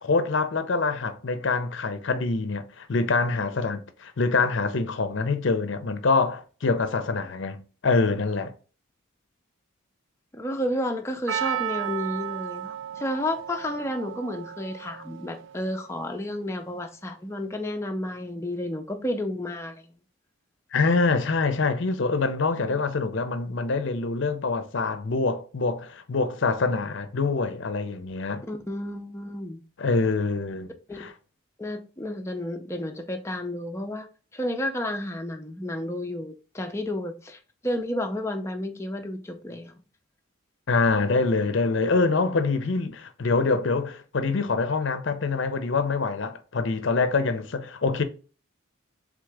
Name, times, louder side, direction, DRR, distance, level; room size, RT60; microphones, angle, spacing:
voice 1, 0.0-8.5 20.7-28.4 29.8-31.1 40.7-48.0, left 3 dB, 60° left, 0.6 m, -25 dB
voice 2, 10.3-19.9 22.6-22.8 28.5-29.6 30.9-31.0 31.6-34.1 34.3-39.8, left 1 dB, 15° left, 0.5 m, -31 dB
Percussion, 11.3-15.6 15.9-16.0, right 11 dB, 60° right, 0.4 m, -34 dB
3.7 x 3.7 x 3.3 m
head